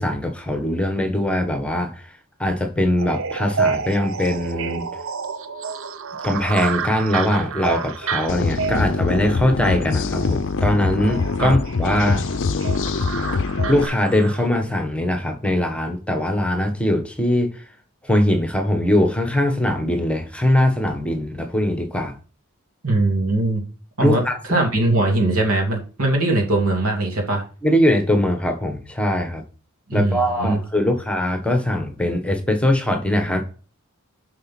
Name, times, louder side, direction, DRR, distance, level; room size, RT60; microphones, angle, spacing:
voice 1, 0.0-2.1 2.4-4.9 6.2-12.2 13.7-17.6 18.0-22.1 24.0-24.4 27.6-29.4 29.9-33.4, left 1 dB, 5° left, 1.2 m, -21 dB
sound 1, 3.0-14.5, right 5 dB, 65° right, 0.7 m, -30 dB
sound 2, 8.3-13.9, left 4 dB, 60° left, 0.5 m, -24 dB
voice 2, 22.8-23.6 24.0-24.2 24.5-27.4 29.9-30.6, right 2 dB, 85° right, 2.8 m, -20 dB
7.7 x 5.1 x 5.9 m
head